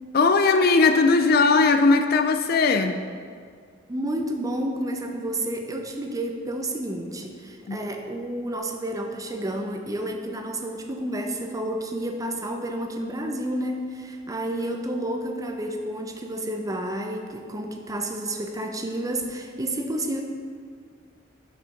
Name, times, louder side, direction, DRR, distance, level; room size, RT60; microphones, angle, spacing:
voice 1, 0.1-3.1 7.7-7.8, left 4 dB, 50° left, 8 dB, 0.4 m, -19 dB
voice 2, 3.9-20.2, right 1 dB, 20° right, 3 dB, 0.6 m, -30 dB
6.3 x 5.1 x 5.8 m, 2.1 s
head